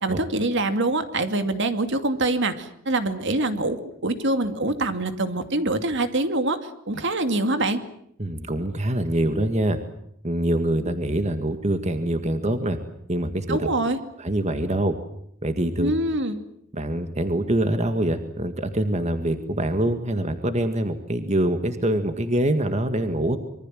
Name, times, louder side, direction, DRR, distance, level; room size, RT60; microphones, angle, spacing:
voice 1, 0.0-6.6 6.9-7.8 13.5-14.0 15.8-16.4, right 2 dB, 65° right, 8 dB, 2.5 m, -24 dB
voice 2, 8.2-9.8 10.2-12.8 13.1-13.7 14.2-15.0 15.4-15.9 16.7-23.4, right 1 dB, 35° right, 8 dB, 1.9 m, -24 dB
26.0 x 23.5 x 7.6 m, 0.72 s
head